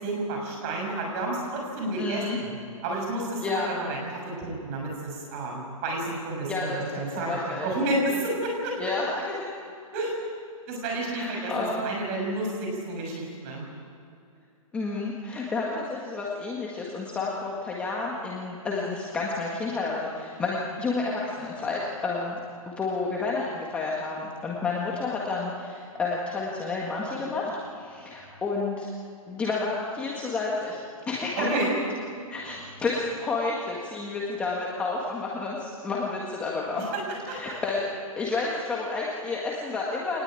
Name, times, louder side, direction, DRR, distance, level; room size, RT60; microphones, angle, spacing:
voice 1, 0.0-2.5 2.8-8.7 9.9-10.1 10.7-13.6 31.4-31.7 36.8-37.0 37.3-37.4, right 2 dB, 25° right, 0 dB, 6.4 m, -30 dB
voice 2, 2.0-2.4 3.4-3.7 6.5-7.7 8.8-9.5 11.0-11.8 14.7-22.4 22.7-28.9 29.3-31.5 32.3-36.8 37.3-37.9 38.2-40.2, left 3 dB, 5° left, -4 dB, 1.7 m, -30 dB
24.5 x 20.0 x 9.1 m, 2.5 s
hypercardioid pair, 170°, 18 cm